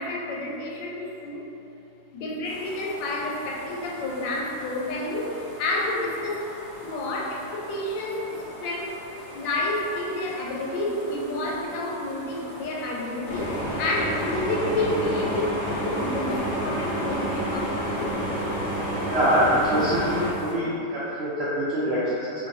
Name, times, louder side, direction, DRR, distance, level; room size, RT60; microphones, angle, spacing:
voice 1, 0.0-1.4 2.1-6.5 6.8-9.0 9.3-15.6 15.8-18.2, left 2 dB, 90° left, -2 dB, 1.3 m, -29 dB
sound 1, 2.4-20.5, equal, 50° right, 0.9 m, -43 dB
sound 2, 13.2-20.3, equal, 55° left, 0.7 m, -29 dB
voice 2, 19.0-22.3, equal, 75° right, -10 dB, 0.6 m, -24 dB
3.8 x 2.6 x 2.6 m, 2.7 s
omnidirectional pair, 1.9 m